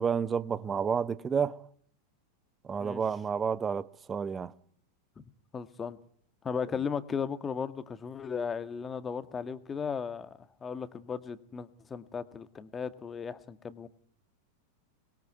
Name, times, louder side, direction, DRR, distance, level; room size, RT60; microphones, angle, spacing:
voice 1, 0.0-1.6 2.6-4.5, right 6 dB, 20° right, 1.1 m, -30 dB
voice 2, 5.5-6.0 6.4-13.9, left 6 dB, 20° left, 1.9 m, -36 dB
26.0 x 21.5 x 9.5 m
figure-of-eight pair, 90°, 0 cm